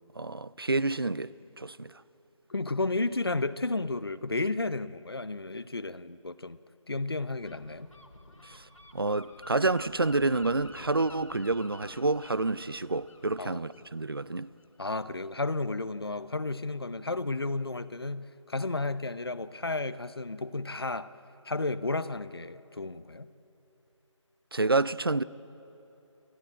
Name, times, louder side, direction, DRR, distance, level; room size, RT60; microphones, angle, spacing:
voice 1, 0.2-1.9 8.4-8.6 8.9-14.5 24.5-25.2, right 3 dB, 45° right, 0.5 m, -28 dB
voice 2, 2.5-6.6 6.9-7.9 13.4-13.7 14.8-21.1 21.4-23.3, left 2 dB, 50° left, 0.7 m, -32 dB
Gull seagull, 7.4-14.9, left 2 dB, 80° left, 2.2 m, -50 dB
30.0 x 14.0 x 8.8 m
figure-of-eight pair, 180°, 16 cm